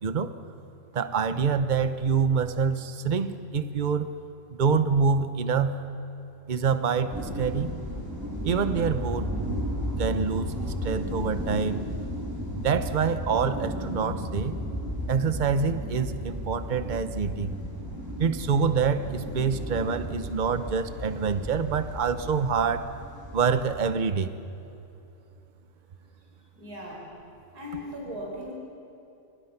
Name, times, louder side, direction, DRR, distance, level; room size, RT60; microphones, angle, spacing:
voice 1, 0.9-4.1 4.5-5.8 6.5-7.7 8.4-9.3 10.0-11.8 12.6-14.6 15.1-17.5 18.2-22.9 23.3-24.3, right 6 dB, 35° right, 10 dB, 0.9 m, -26 dB
sound 1, 7.1-23.8, equal, 10° right, 5.3 m, -34 dB
voice 2, 26.2-27.2 27.5-28.5, left 1 dB, 60° right, -2 dB, 5.4 m, -39 dB
28.0 x 27.5 x 5.9 m, 2.7 s
omnidirectional pair, 1.9 m